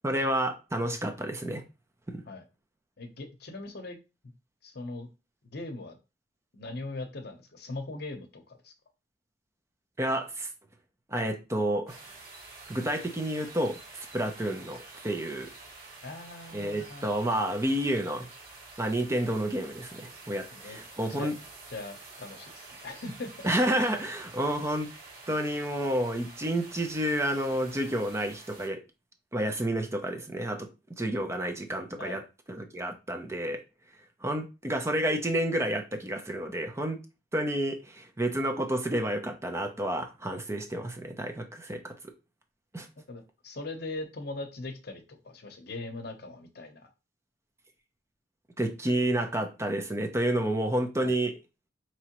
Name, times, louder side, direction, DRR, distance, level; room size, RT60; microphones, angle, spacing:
voice 1, 0.0-1.6 2.1-2.2 10.0-10.5 11.1-12.0 12.7-13.8 14.1-15.5 16.5-18.3 18.8-21.4 23.4-24.9 25.3-28.8 29.3-30.7 31.0-32.2 32.5-33.6 34.2-37.0 37.3-42.0 42.7-42.9 48.6-51.4, right 1 dB, 15° right, 0.5 m, -30 dB
voice 2, 3.0-4.0 4.6-5.1 5.5-6.0 6.5-8.7 16.0-17.0 20.5-20.8 21.1-21.3 21.7-23.5 25.3-25.4 32.0-32.2 43.1-46.9 51.0-51.2, left 2 dB, 60° left, 0.8 m, -40 dB
sound 1, 11.9-28.7, right 3 dB, 55° right, 1.2 m, -48 dB
4.7 x 3.1 x 2.9 m
head